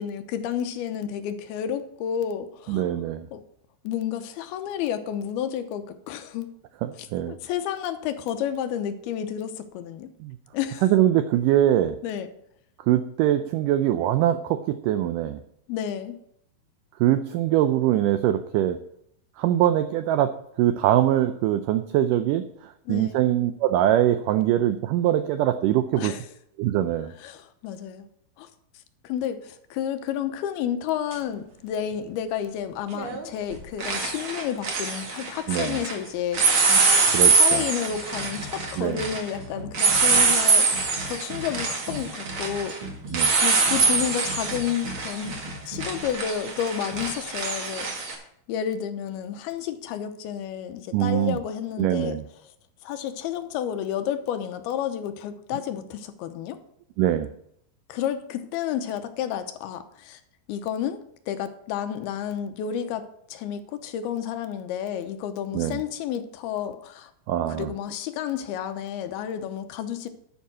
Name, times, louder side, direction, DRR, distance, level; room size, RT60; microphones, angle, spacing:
voice 1, 0.0-2.9 3.3-3.4 3.8-6.5 6.9-10.1 10.5-10.9 12.0-12.3 15.7-16.2 22.9-23.2 25.9-26.3 27.2-28.1 28.4-28.5 29.0-36.8 37.3-42.8 43.4-45.4 45.6-48.2 48.5-52.2 52.4-52.5 52.8-56.6 57.9-60.2 60.5-67.1 67.5-70.1, left 9 dB, 85° left, 9 dB, 2.8 m, -31 dB
voice 2, 2.7-3.3 6.8-7.4 10.2-10.4 10.8-12.0 12.9-15.4 17.0-18.8 19.4-22.5 22.9-26.1 26.6-27.1 35.5-35.8 37.1-37.6 38.8-39.0 43.1-43.3 50.9-51.4 51.8-52.2 57.0-57.3 65.5-65.8 67.3-67.7, right 12 dB, 85° right, 10 dB, 1.8 m, -23 dB
sound 1, 31.1-31.2 32.9-33.2 33.5-35.9 36.3-48.1, right 4 dB, 45° right, 2.1 m, -24 dB
11.5 x 5.5 x 7.5 m, 0.73 s
omnidirectional pair, 4.4 m